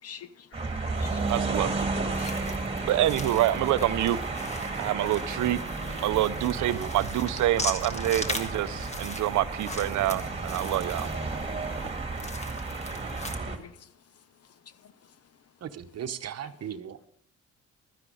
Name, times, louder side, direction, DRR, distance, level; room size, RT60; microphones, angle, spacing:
voice 1, 0.0-1.2 1.8-2.5 13.4-14.0 14.4-15.2, left 8 dB, 55° left, 0.8 m, -49 dB
sound 1, 0.5-13.6, right 3 dB, 20° right, 2.0 m, -33 dB
sound 2, 1.0-13.4, left 2 dB, 20° left, 1.5 m, -40 dB
voice 2, 1.3-1.9 2.9-4.2 4.8-5.6 6.0-11.1, right 14 dB, 75° right, 0.6 m, -26 dB
sound 3, 5.4-10.8, left 1 dB, 80° left, 4.0 m, -48 dB
voice 3, 6.6-6.9 15.6-17.0, right 9 dB, 55° right, 1.0 m, -37 dB
13.0 x 9.8 x 5.4 m
cardioid pair, 90°, 30 cm